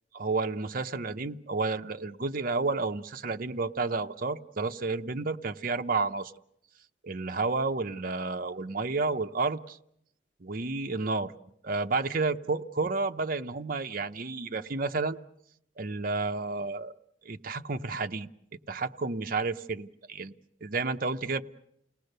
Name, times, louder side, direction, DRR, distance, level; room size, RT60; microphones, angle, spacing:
voice 1, 0.1-6.3 7.0-9.8 10.4-11.3 11.6-15.2 15.8-16.9 17.2-18.3 18.7-20.3 20.6-21.4, right 3 dB, 50° right, 7 dB, 0.8 m, -31 dB
29.5 x 19.0 x 6.7 m, 0.76 s
head